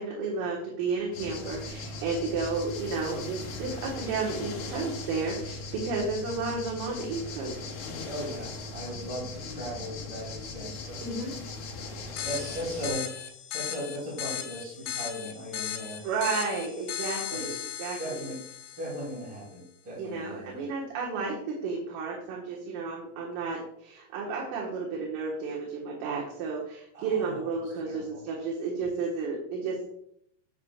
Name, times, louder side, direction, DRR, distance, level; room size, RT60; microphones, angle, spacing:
voice 1, 0.0-7.6 11.0-11.3 16.0-18.2 20.0-29.8, right 4 dB, 75° right, -3 dB, 4.1 m, -32 dB
sound 1, 1.1-12.9, left 3 dB, 60° left, 2.6 m, -39 dB
voice 2, 8.0-11.0 12.2-16.0 17.3-17.6 18.0-18.4 18.8-20.6 26.9-27.5 27.8-28.2, equal, 30° right, -5 dB, 2.5 m, -38 dB
sound 2, 12.2-19.3, left 11 dB, 80° left, 3.3 m, -37 dB
11.5 x 8.2 x 2.4 m, 0.69 s
omnidirectional pair, 5.9 m